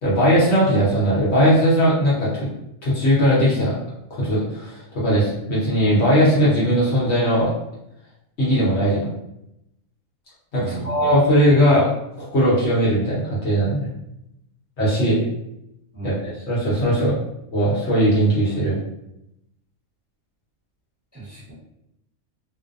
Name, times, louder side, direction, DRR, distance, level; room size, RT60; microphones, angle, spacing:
voice 1, 0.0-2.5 2.8-3.7 4.1-7.5 8.4-9.1 10.5-11.9 12.2-13.9 14.8-15.2 16.0-16.2 16.5-17.1 17.5-18.8, equal, 55° left, -8 dB, 1.0 m, -19 dB
voice 2, 10.6-11.1 15.9-16.2 21.1-21.5, right 4 dB, 15° right, -9 dB, 0.8 m, -34 dB
2.5 x 2.1 x 2.5 m, 0.83 s
omnidirectional pair, 1.5 m